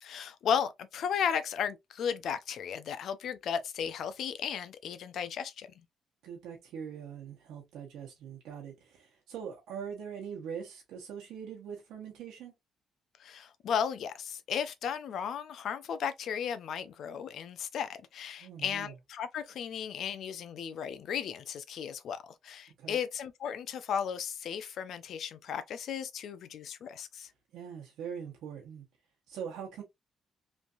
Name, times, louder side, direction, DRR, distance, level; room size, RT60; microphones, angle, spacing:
voice 1, 0.0-5.7 13.2-27.3, left 7 dB, 70° left, 0.5 m, -35 dB
voice 2, 6.2-12.5 18.4-18.9 22.8-23.0 27.5-28.8 29.3-29.8, right 7 dB, 85° right, 0.9 m, -42 dB
3.2 x 2.6 x 2.4 m
cardioid pair, 90°, 0 cm